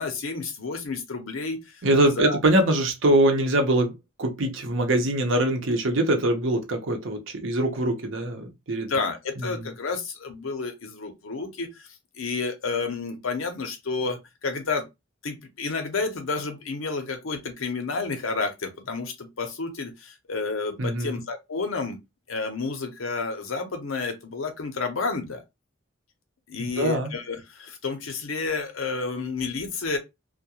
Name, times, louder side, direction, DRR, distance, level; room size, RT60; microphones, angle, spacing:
voice 1, 0.0-1.6 2.0-2.4 8.9-11.9 12.2-14.8 15.2-22.0 22.3-25.4 26.5-30.0, left 4 dB, 80° left, 0.7 m, -30 dB
voice 2, 1.8-3.9 4.2-8.9 9.4-9.7 20.8-21.2 26.6-27.1, right 1 dB, 70° right, 0.7 m, -23 dB
2.3 x 2.1 x 2.8 m
head